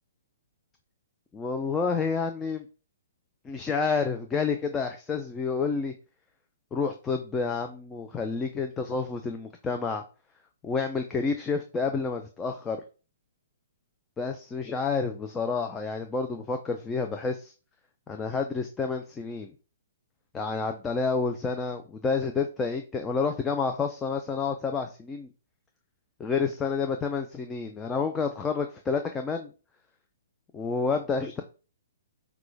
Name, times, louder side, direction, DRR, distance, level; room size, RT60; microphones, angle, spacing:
voice 1, 1.3-2.6 3.4-5.9 6.7-10.0 10.6-12.8 14.2-17.5 18.1-19.5 20.3-25.3 26.2-29.5 30.5-31.4, left 4 dB, 15° left, 4 dB, 0.5 m, -29 dB
5.9 x 2.3 x 3.3 m, 0.34 s
hypercardioid pair, 125°, 0 cm